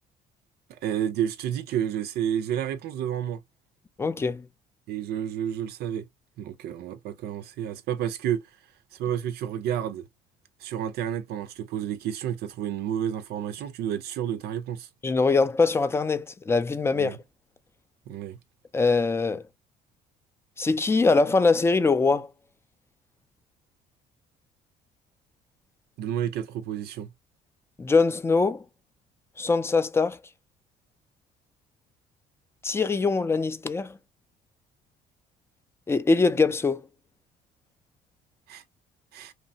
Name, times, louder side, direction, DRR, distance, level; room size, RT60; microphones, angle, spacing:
voice 1, 0.7-3.4 4.9-6.1 6.4-8.4 8.9-10.0 10.6-14.9 17.0-17.1 18.1-18.4 26.0-27.1 38.5-38.6 39.1-39.3, right 10 dB, 70° right, 0.4 m, -30 dB
voice 2, 4.0-4.5 15.0-17.2 18.7-19.4 20.6-22.3 27.8-28.6 29.4-30.2 32.6-34.0 35.9-36.8, left 4 dB, 15° left, 0.4 m, -23 dB
2.9 x 2.1 x 2.6 m
cardioid pair, 110°, 17 cm